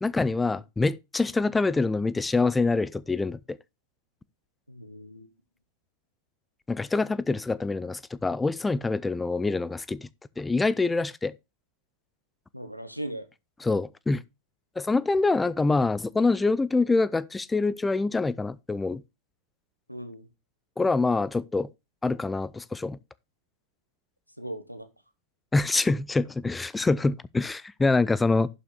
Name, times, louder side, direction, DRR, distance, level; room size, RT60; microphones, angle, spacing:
voice 1, 0.0-3.6 6.7-10.1 10.4-11.3 13.6-14.2 14.8-19.0 20.8-21.7 22.0-23.0 25.5-28.5, left 3 dB, 10° left, 0.4 m, -25 dB
voice 2, 4.7-5.3 12.5-13.3 19.9-20.3 24.4-24.9, right 1 dB, 90° right, 1.2 m, -38 dB
11.0 x 5.9 x 4.0 m
figure-of-eight pair, 90°, 0 cm